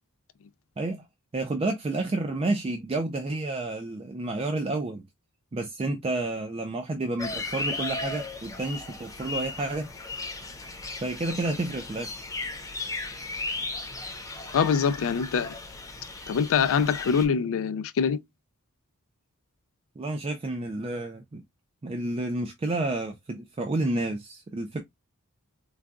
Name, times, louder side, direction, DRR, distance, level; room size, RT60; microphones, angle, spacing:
voice 1, 1.3-5.0 5.5-9.9 11.0-12.1 20.0-21.4 21.8-24.8, right 2 dB, 25° right, 0.4 m, -30 dB
sound 1, 7.2-17.2, left 3 dB, 15° left, 0.7 m, -36 dB
voice 2, 14.5-15.5 16.3-18.2, left 6 dB, 65° left, 0.4 m, -24 dB
3.9 x 2.2 x 2.3 m
head